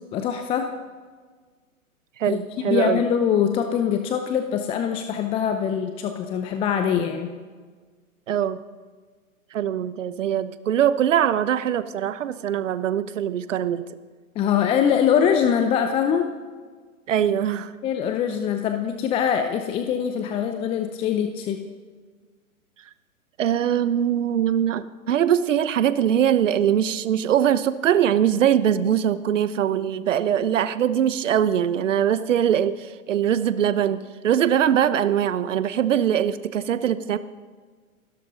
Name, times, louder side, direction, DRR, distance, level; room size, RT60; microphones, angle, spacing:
voice 1, 0.1-0.7 2.3-2.4 2.6-7.3 14.4-16.3 17.8-21.6, left 8 dB, 15° left, 7 dB, 0.6 m, -23 dB
voice 2, 2.2-3.0 8.3-8.6 9.5-13.9 17.1-17.7 23.4-37.2, right 9 dB, 60° right, 13 dB, 1.1 m, -22 dB
28.5 x 13.0 x 3.9 m, 1.5 s
figure-of-eight pair, 120°, 43 cm